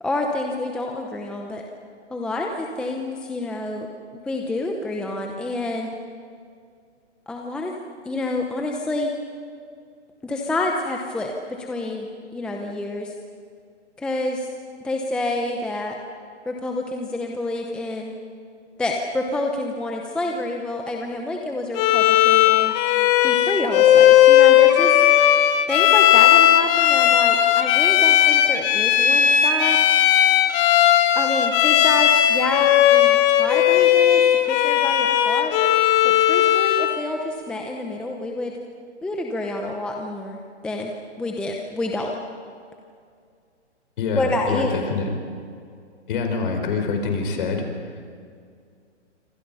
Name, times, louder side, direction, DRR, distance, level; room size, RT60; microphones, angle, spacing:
voice 1, 0.0-1.6 2.1-3.9 4.1-5.9 7.3-7.7 8.0-9.1 10.2-13.1 14.0-14.5 14.8-16.0 16.5-18.1 18.8-22.7 23.2-25.0 25.7-29.8 31.1-35.5 36.0-38.5 39.0-40.4 40.6-40.9 41.2-42.1 44.1-44.8, left 2 dB, 5° left, 1 dB, 0.8 m, -28 dB
Bowed string instrument, 21.7-37.0, left 11 dB, 20° left, 1.1 m, -16 dB
voice 2, 44.0-45.1 46.1-48.1, left 4 dB, 45° left, 4 dB, 4.9 m, -26 dB
27.5 x 25.5 x 5.6 m, 2.2 s
hypercardioid pair, 155°, 36 cm